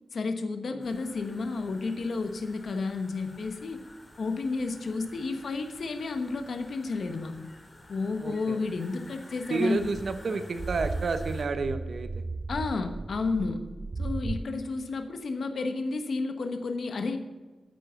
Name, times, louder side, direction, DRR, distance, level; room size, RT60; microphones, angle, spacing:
voice 1, 0.1-3.8 4.2-7.3 7.9-9.9 12.5-13.6 14.0-17.2, left 3 dB, 65° left, 7 dB, 1.1 m, -31 dB
sound 1, 0.8-11.4, left 1 dB, 25° left, 2.5 m, -52 dB
voice 2, 8.2-8.6 9.5-12.1, right 4 dB, 60° right, 9 dB, 1.0 m, -30 dB
sound 2, 9.7-14.4, right 3 dB, 35° right, 0.6 m, -35 dB
9.4 x 8.8 x 6.9 m, 1.3 s
wide cardioid pair, 125°, 0 cm